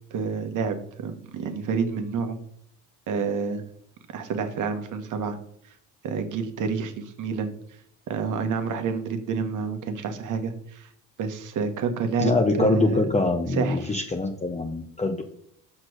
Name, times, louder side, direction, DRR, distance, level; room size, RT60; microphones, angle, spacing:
voice 1, 0.1-2.4 3.1-3.6 4.1-5.4 6.0-7.5 8.1-10.9 11.2-13.1 13.5-14.0, right 5 dB, 65° right, 7 dB, 1.4 m, -28 dB
voice 2, 12.2-15.2, left 3 dB, 20° left, 4 dB, 0.9 m, -24 dB
6.1 x 4.3 x 6.4 m, 0.69 s
supercardioid pair, 75°, 34 cm